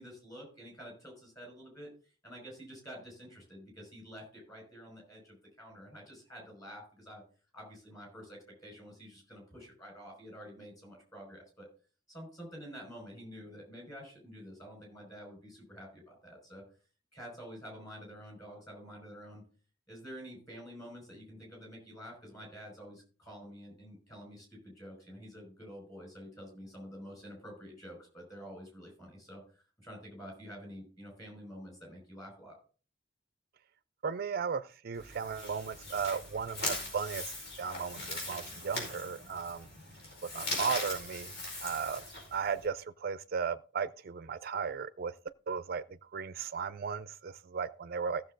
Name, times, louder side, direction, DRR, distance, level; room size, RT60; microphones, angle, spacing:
voice 1, 0.0-1.9 2.2-7.2 7.5-11.7 12.1-16.6 17.1-19.4 19.9-29.4 29.8-32.6, equal, 20° left, 5.6 m, -49 dB
voice 2, 34.0-37.3 37.6-39.7 40.2-41.3 41.6-42.0 42.3-45.1 45.5-48.2, right 6 dB, 50° right, 0.4 m, -36 dB
sound 1, 34.9-42.7, left 2 dB, 60° left, 4.9 m, -40 dB
15.0 x 6.9 x 3.8 m
head